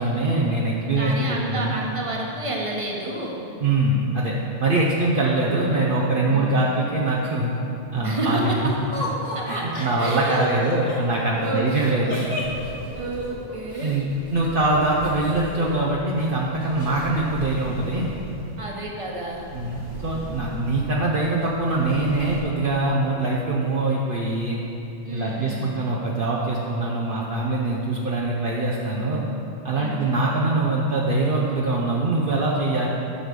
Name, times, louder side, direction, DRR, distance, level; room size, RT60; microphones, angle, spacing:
voice 1, 0.0-1.7 3.6-4.3 4.6-7.5 7.9-8.5 9.5-12.4 13.8-14.1 14.3-18.1 19.5-24.6 25.1-29.2 29.6-32.9, right 2 dB, 50° right, -4 dB, 1.0 m, -23 dB
voice 2, 1.0-3.4 6.3-6.7 8.0-8.6 9.3-10.4 11.4-11.7 12.9-14.0 18.6-19.4 25.0-25.8 29.7-30.2, right 1 dB, 30° right, -2 dB, 1.3 m, -30 dB
Laughter, 8.9-14.0 15.0-15.9 16.2-16.3 16.6-17.1, left 1 dB, 40° left, 1.7 m, -33 dB
sound 1, 12.4-22.4, equal, 85° right, 2.7 m, -41 dB
11.5 x 6.5 x 5.3 m, 2.7 s
omnidirectional pair, 1.2 m